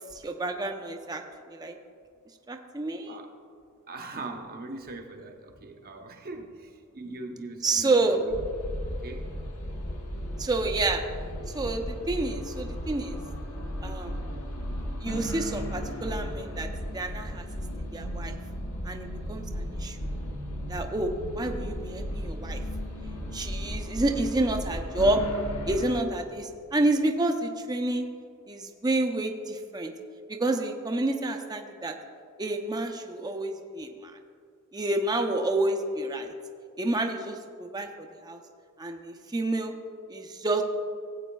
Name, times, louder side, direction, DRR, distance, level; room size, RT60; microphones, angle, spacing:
voice 1, 0.2-1.2 1.5-1.8 2.5-3.2 7.6-8.2 10.4-11.0 11.5-13.2 13.8-14.1 15.0-16.7 16.9-17.4 17.8-18.3 18.8-20.0 20.7-21.1 21.3-22.6 23.3-25.2 25.7-28.1 28.5-29.9 30.3-31.9 32.4-34.1 34.7-36.3 36.8-38.4 38.8-39.7 40.1-40.6, right 2 dB, 20° right, 4 dB, 0.5 m, -29 dB
voice 2, 3.9-8.4 8.9-9.3, right 2 dB, 45° right, 4 dB, 0.9 m, -41 dB
sound 1, 8.3-26.0, equal, 75° left, 1.1 m, -35 dB
17.0 x 8.2 x 2.3 m, 2.2 s
head